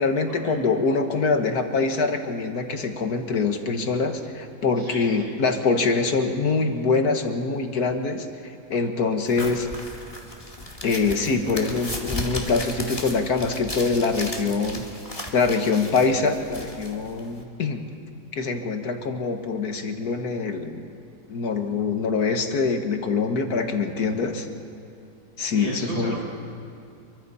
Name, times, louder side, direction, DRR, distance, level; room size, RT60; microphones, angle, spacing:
voice 1, 0.0-9.7 10.8-14.8 15.3-17.8 18.3-20.8 21.3-24.5 25.4-26.1, left 4 dB, 60° left, 5 dB, 1.9 m, -24 dB
voice 2, 4.8-5.3 25.5-26.2, right 1 dB, 55° right, -4 dB, 5.7 m, -34 dB
sound 1, 9.3-17.4, left 1 dB, 20° left, 2.2 m, -35 dB
30.0 x 23.5 x 4.2 m, 2.6 s
omnidirectional pair, 1.9 m